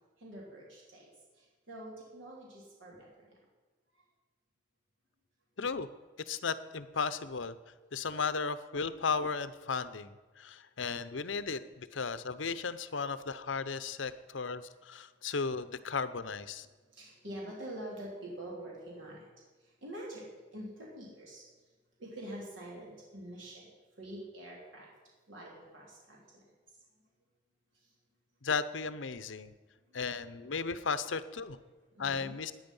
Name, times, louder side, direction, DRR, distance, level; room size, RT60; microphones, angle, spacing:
voice 1, 0.2-1.1 1.4-3.3 16.9-19.3 19.8-21.4 22.0-23.7 24.0-24.9 25.3-26.4 31.9-32.3, right 1 dB, 80° right, -4 dB, 3.5 m, -45 dB
voice 2, 5.6-5.9 6.3-7.5 7.9-16.7 28.4-29.5 29.9-31.6 32.0-32.5, left 5 dB, 80° left, 13 dB, 0.8 m, -35 dB
17.0 x 9.9 x 5.5 m, 1.4 s
head